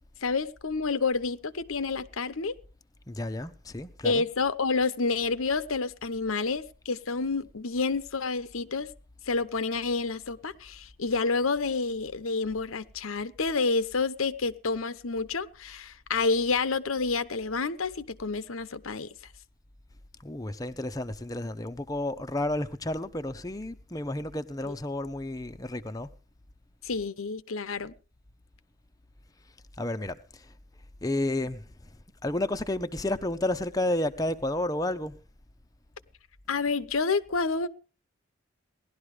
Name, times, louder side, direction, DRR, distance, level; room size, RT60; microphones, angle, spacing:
voice 1, 0.2-2.5 4.0-8.9 9.3-19.1 26.8-27.9 36.5-37.7, left 4 dB, 85° left, 0.9 m, -29 dB
voice 2, 3.1-4.2 20.2-26.1 29.8-30.5 31.0-31.6 32.2-35.2, left 1 dB, 15° left, 0.7 m, -31 dB
18.0 x 12.0 x 4.9 m
head